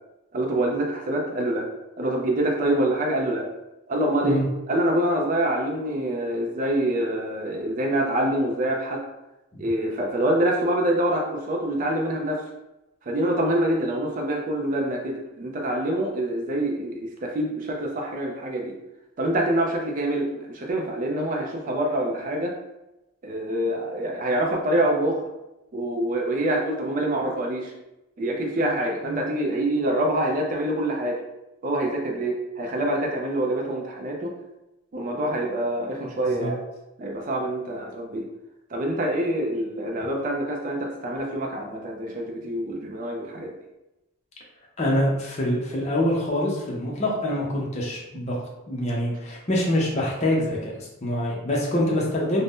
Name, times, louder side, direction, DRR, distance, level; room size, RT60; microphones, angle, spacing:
voice 1, 0.3-1.7 2.0-3.5 3.9-4.4 4.7-9.0 9.6-12.4 13.1-18.7 19.2-22.6 23.2-25.3 25.7-27.7 28.2-31.2 31.6-34.3 34.9-36.6 37.0-38.3 38.7-43.5, right 1 dB, 40° right, 0 dB, 0.4 m, -25 dB
voice 2, 44.8-48.4 48.7-52.4, left 1 dB, 30° left, -3 dB, 0.6 m, -25 dB
2.5 x 2.1 x 3.5 m, 0.95 s
head